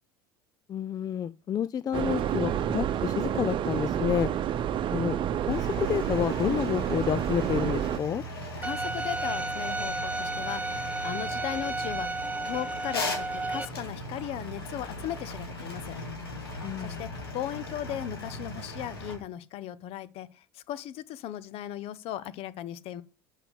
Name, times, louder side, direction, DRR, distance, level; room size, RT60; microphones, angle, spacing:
voice 1, 0.7-4.3 4.9-5.2 5.5-8.2 16.6-17.0, left 9 dB, 30° left, 0.4 m, -29 dB
sound 1, 1.9-8.0, right 9 dB, 40° right, 0.8 m, -29 dB
sound 2, 5.5-19.2, left 1 dB, 85° left, 2.6 m, -38 dB
voice 2, 8.6-16.0 16.8-23.0, left 12 dB, 55° left, 0.8 m, -37 dB
Bowed string instrument, 8.6-13.6, right 2 dB, 10° right, 1.0 m, -33 dB
6.8 x 5.9 x 6.9 m
hypercardioid pair, 75°, 12 cm